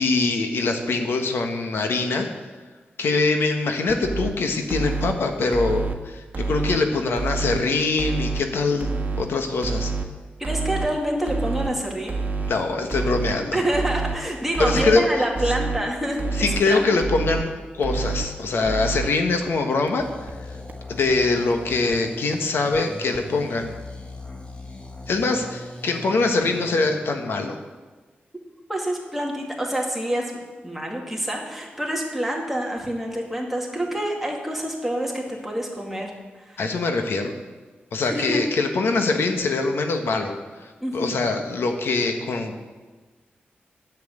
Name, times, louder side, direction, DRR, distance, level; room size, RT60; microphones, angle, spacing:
voice 1, 0.0-2.3 3.0-8.9 9.2-9.9 12.4-13.6 14.6-15.1 16.4-20.1 20.9-23.7 25.1-27.6 36.6-37.3 37.9-42.7, left 3 dB, 85° left, 5 dB, 1.3 m, -23 dB
sound 1, 3.9-4.3 4.7-5.1 5.5-5.9 6.3-6.8 7.2-7.6 8.0-8.4 8.8-9.2 9.6-10.1 10.4-10.9 11.3-11.7 12.1-12.5 12.9-13.3 13.7-14.2 14.5-15.0 15.3-15.8 16.2-16.6 17.0-17.4 17.8-18.3 18.6-19.1 19.5-19.6 19.9-20.0 20.3-20.4 20.7-20.8 21.1-21.2 21.5-21.6 21.9-22.0 22.3-22.4 22.7-22.8 23.1-23.2, right 4 dB, 40° right, 1.4 m, -27 dB
voice 2, 10.4-12.1 13.5-16.8 28.7-30.3 30.6-36.1 36.5-36.6 38.1-38.4 40.8-41.1, right 1 dB, 5° right, -1 dB, 2.1 m, -27 dB
sound 2, 20.0-26.9, left 2 dB, 30° left, 1.5 m, -40 dB
11.0 x 7.5 x 8.7 m, 1.3 s
wide cardioid pair, 155°, 4 cm